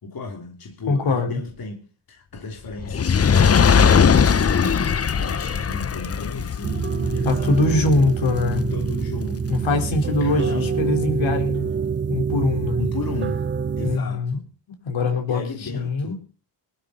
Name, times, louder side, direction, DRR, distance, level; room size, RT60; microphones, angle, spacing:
voice 1, 0.0-7.9 8.5-9.7 10.1-10.8 12.8-13.4 13.8-14.5 15.3-16.2, left 3 dB, 45° left, 3.1 m, -35 dB
voice 2, 0.9-1.4 7.2-8.6 9.5-11.7 12.1-12.9 13.8-14.4 14.8-16.2, left 3 dB, 70° left, 4.6 m, -22 dB
Fire, 2.8-9.2 9.9-10.0, left 6 dB, 30° left, 0.8 m, -20 dB
sound 1, 6.6-14.0, right 6 dB, 25° right, 0.6 m, -25 dB
20.0 x 13.0 x 4.2 m
cardioid pair, 90°, 49 cm